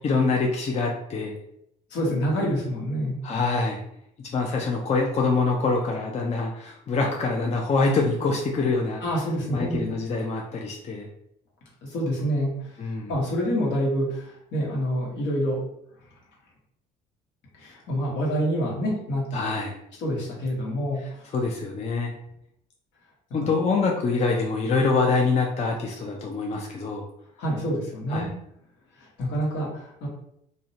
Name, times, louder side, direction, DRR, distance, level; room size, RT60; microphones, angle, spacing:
voice 1, 0.0-1.3 3.2-3.8 4.3-9.0 9.5-11.1 12.8-13.1 19.3-19.8 21.3-22.1 23.3-27.0 28.1-28.3, left 3 dB, 35° left, 0 dB, 0.5 m, -25 dB
voice 2, 1.9-3.2 9.0-9.8 11.8-12.8 13.1-15.6 17.6-19.5 20.0-21.3 23.4-23.5 27.4-28.3 29.0-30.1, equal, 70° left, -4 dB, 1.1 m, -27 dB
2.5 x 2.0 x 2.7 m, 0.73 s
supercardioid pair, 70°, 19 cm